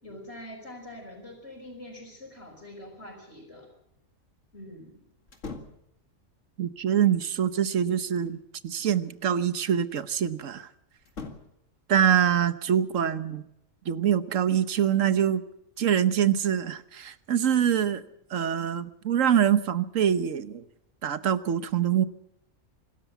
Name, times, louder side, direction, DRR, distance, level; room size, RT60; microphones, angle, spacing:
voice 1, 0.0-3.7 4.5-5.0 17.7-18.0, left 1 dB, 55° left, -4 dB, 5.7 m, -44 dB
sound 1, 5.3-5.9 7.5-8.4 11.0-11.6, left 4 dB, 70° left, 2.5 m, -42 dB
voice 2, 6.6-8.4 8.6-10.7 11.9-13.4 13.9-15.4 15.8-18.0 18.3-20.6 21.0-22.0, right 9 dB, 80° right, 13 dB, 1.4 m, -24 dB
25.5 x 13.0 x 8.2 m, 0.79 s
omnidirectional pair, 1.3 m